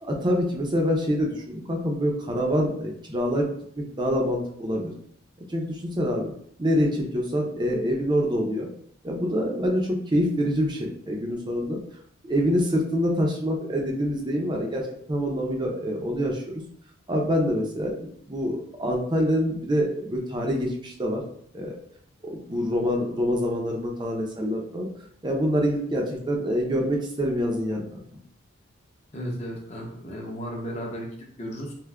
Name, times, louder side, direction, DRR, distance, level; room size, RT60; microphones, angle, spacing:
voice 1, 0.0-4.9 5.5-6.3 6.6-8.7 9.0-11.8 12.2-16.6 17.1-21.2 21.5-21.7 22.2-24.9 25.2-28.0, equal, 20° right, 0 dB, 0.5 m, -26 dB
voice 2, 29.1-31.7, equal, 30° left, -1 dB, 0.6 m, -34 dB
3.5 x 2.5 x 2.2 m, 0.65 s
head